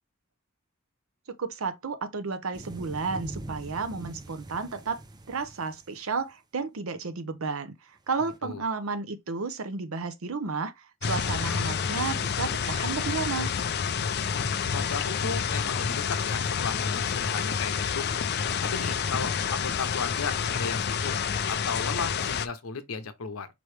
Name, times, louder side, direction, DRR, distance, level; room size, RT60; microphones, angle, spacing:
voice 1, 1.3-5.0 5.3-13.5, right 4 dB, 75° right, 0.7 m, -32 dB
sound 1, 2.5-6.2 8.1-8.4, right 2 dB, 20° right, 0.5 m, -42 dB
sound 2, 11.0-22.5, left 6 dB, 50° left, 0.5 m, -29 dB
voice 2, 14.3-18.1 18.6-21.1 21.5-23.5, left 5 dB, 85° left, 0.8 m, -35 dB
5.2 x 3.1 x 3.2 m
head